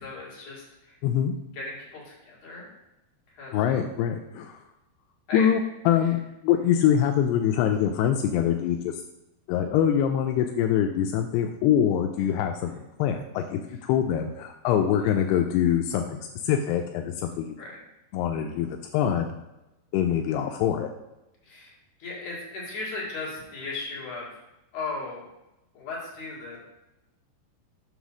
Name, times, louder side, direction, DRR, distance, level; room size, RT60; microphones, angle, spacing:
voice 1, 0.0-0.9 1.5-2.7 3.3-3.8 5.3-5.5 17.6-17.8 20.3-20.5 21.4-21.7 22.0-24.3 24.7-25.2 25.7-26.6, left 3 dB, 50° left, -5 dB, 3.2 m, -36 dB
voice 2, 1.0-1.4 3.5-4.6 5.3-8.9 9.5-16.2 16.5-17.5 18.1-19.3 19.9-20.9, left 9 dB, 85° left, 4 dB, 2.3 m, -24 dB
7.2 x 3.4 x 6.1 m, 0.95 s
omnidirectional pair, 5.0 m